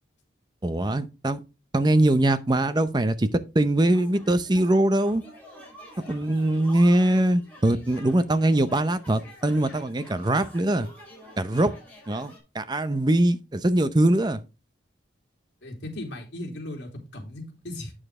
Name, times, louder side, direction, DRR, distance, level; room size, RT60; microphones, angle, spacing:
voice 1, 0.6-1.4 1.7-3.3 3.5-5.2 6.1-10.9 11.4-11.7 12.1-14.4, right 1 dB, 20° right, 0.6 m, -22 dB
sound 1, 3.9-12.4, equal, 10° left, 4.3 m, -48 dB
voice 2, 15.6-17.9, left 1 dB, 65° left, 3.1 m, -37 dB
8.8 x 6.8 x 3.6 m
head